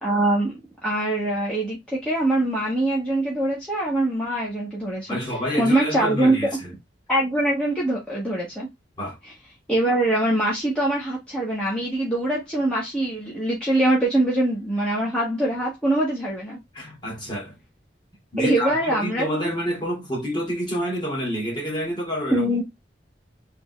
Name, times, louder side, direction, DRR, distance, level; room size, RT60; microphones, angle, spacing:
voice 1, 0.0-5.2 5.6-6.4 7.1-8.7 9.7-16.6 18.4-19.3 22.3-22.6, right 1 dB, 5° left, 1.3 m, -23 dB
voice 2, 5.1-6.8 9.0-9.2 16.7-17.6 18.3-22.5, equal, 25° left, 2.0 m, -28 dB
3.5 x 3.5 x 3.2 m
head